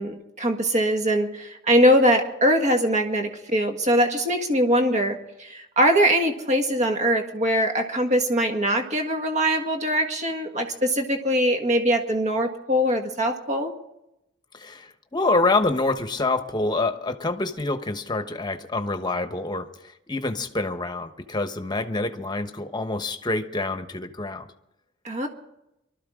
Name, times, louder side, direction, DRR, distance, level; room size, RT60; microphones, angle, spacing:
voice 1, 0.0-13.7 25.0-25.3, equal, 35° right, 4 dB, 1.7 m, -22 dB
voice 2, 14.5-24.5, left 2 dB, 20° left, 8 dB, 1.1 m, -26 dB
24.0 x 13.0 x 3.7 m, 0.85 s
head